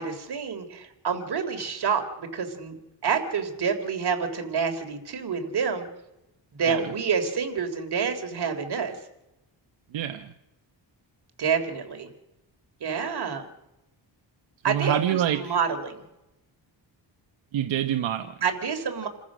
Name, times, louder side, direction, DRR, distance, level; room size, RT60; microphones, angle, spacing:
voice 1, 0.0-2.8 3.0-5.9 6.5-9.0 11.4-12.1 12.8-13.5 14.6-16.0 18.4-19.1, right 6 dB, 60° right, 5 dB, 3.6 m, -28 dB
voice 2, 9.9-10.3 14.7-15.4 17.5-18.3, right 11 dB, 85° right, 7 dB, 1.2 m, -26 dB
28.5 x 14.5 x 6.3 m, 0.92 s
cardioid pair, 95°, 45 cm